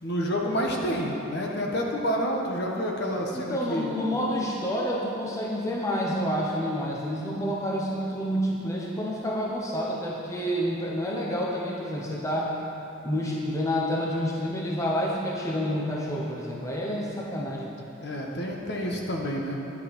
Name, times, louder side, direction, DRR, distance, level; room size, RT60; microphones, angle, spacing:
voice 1, 0.0-3.9 18.0-19.5, equal, 55° left, -1 dB, 1.4 m, -29 dB
voice 2, 3.3-12.5 13.0-17.9, equal, 15° left, -3 dB, 1.0 m, -29 dB
11.5 x 9.7 x 5.3 m, 2.9 s
head